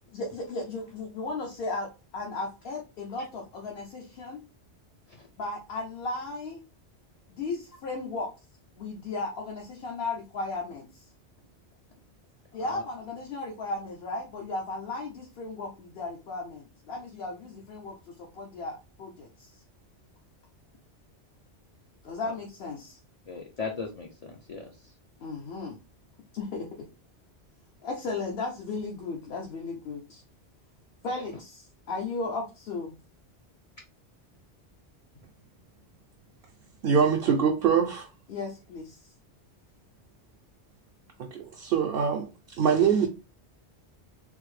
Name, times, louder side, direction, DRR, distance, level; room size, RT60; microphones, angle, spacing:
voice 1, 0.1-4.4 5.4-6.6 7.3-8.3 8.8-11.0 12.5-19.3 22.0-23.0 25.2-25.8 26.3-26.8 27.8-30.2 31.0-32.9 38.3-39.0, left 3 dB, 60° left, 0.9 m, -35 dB
voice 2, 23.3-24.9, left 4 dB, 45° left, 0.5 m, -38 dB
voice 3, 36.8-38.1 41.2-43.1, right 7 dB, 65° right, 0.7 m, -24 dB
3.6 x 2.0 x 3.1 m
omnidirectional pair, 1.1 m